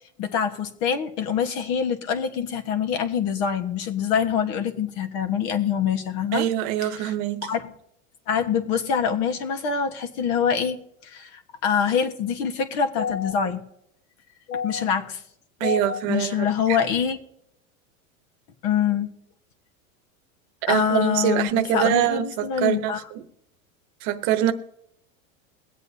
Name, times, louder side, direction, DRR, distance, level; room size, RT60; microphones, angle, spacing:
voice 1, 0.2-6.4 7.0-7.1 7.4-7.7 8.3-13.6 14.5-15.2 15.6-17.2 18.6-19.1 20.7-23.0, left 7 dB, 55° left, 1.5 m, -25 dB
voice 2, 6.3-7.5 15.6-16.8 20.6-23.2 24.0-24.5, right 11 dB, 55° right, 1.0 m, -24 dB
22.5 x 8.1 x 2.8 m
supercardioid pair, 130°, 41 cm